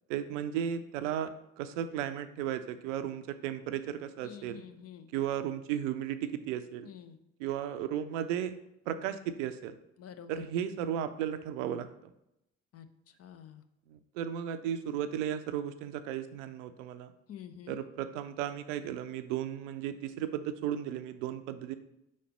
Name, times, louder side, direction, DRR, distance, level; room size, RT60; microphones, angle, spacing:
voice 1, 0.1-4.6 5.1-6.9 7.4-8.6 8.9-9.8 10.3-11.9 13.9-17.1 17.7-21.8, right 10 dB, 70° right, 11 dB, 0.5 m, -35 dB
voice 2, 4.2-5.1 6.8-7.2 10.0-10.4 12.7-13.6 17.3-17.8, left 8 dB, 40° left, 9 dB, 0.6 m, -48 dB
5.1 x 4.2 x 5.1 m, 0.83 s
figure-of-eight pair, 45°, 38 cm